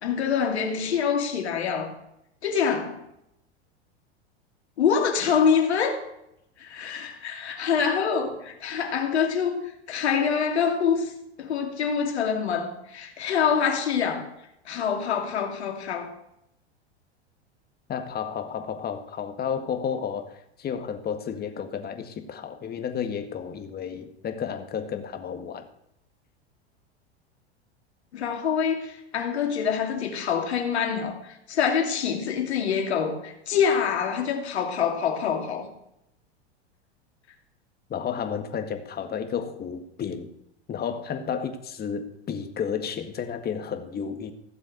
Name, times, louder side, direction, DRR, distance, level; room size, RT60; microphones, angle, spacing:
voice 1, 0.0-1.9 2.4-3.0 4.8-6.0 6.6-11.1 11.4-14.3 14.7-16.1 28.1-31.2 31.5-35.7, left 7 dB, 75° left, 2.7 m, -25 dB
voice 2, 17.9-25.7 37.9-40.3 40.7-44.3, left 7 dB, 30° left, 1.8 m, -32 dB
15.5 x 7.5 x 6.7 m
hypercardioid pair, 90°, 33 cm